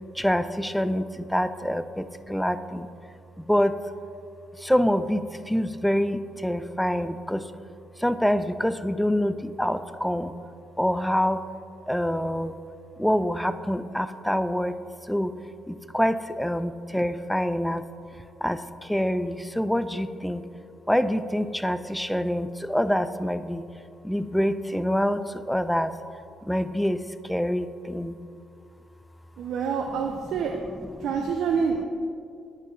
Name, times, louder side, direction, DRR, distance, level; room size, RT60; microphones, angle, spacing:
voice 1, 0.1-2.9 3.4-3.8 4.6-7.5 8.0-10.4 10.8-11.4 11.9-12.5 13.0-14.8 15.1-15.3 15.7-17.8 18.4-20.4 20.9-23.6 24.0-25.9 26.4-28.2, equal, 5° left, 12 dB, 0.3 m, -26 dB
voice 2, 29.4-30.5 31.0-31.8, right 6 dB, 70° right, 2 dB, 0.4 m, -27 dB
9.4 x 4.4 x 3.1 m, 2.4 s
supercardioid pair, 70°, 0 cm